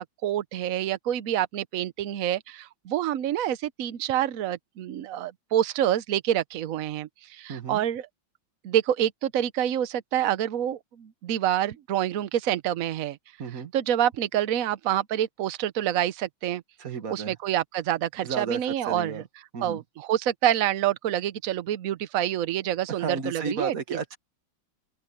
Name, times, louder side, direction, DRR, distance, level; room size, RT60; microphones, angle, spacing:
voice 1, 0.0-8.1 8.6-13.2 13.7-16.6 17.1-19.2 19.6-24.0, right 11 dB, 75° right, 0.7 m, -27 dB
voice 2, 7.5-7.8 13.4-13.7 16.8-17.4 18.2-19.2 19.5-19.8 23.0-24.2, right 5 dB, 45° right, 1.9 m, -33 dB
open air
omnidirectional pair, 2.3 m